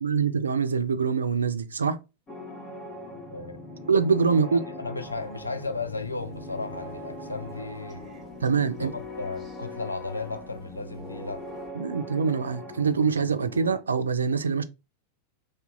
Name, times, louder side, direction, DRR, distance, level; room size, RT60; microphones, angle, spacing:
voice 1, 0.0-2.0 3.9-4.6 8.4-8.9 11.8-14.6, right 5 dB, 70° right, 0.3 m, -24 dB
sound 1, 2.3-13.8, left 1 dB, 25° left, 1.2 m, -41 dB
voice 2, 3.1-3.6 4.5-8.1 8.8-11.5, left 3 dB, 80° left, 0.4 m, -35 dB
Crow, 5.0-11.7, right 3 dB, 5° right, 1.5 m, -53 dB
2.8 x 2.2 x 3.5 m
figure-of-eight pair, 90°, 0 cm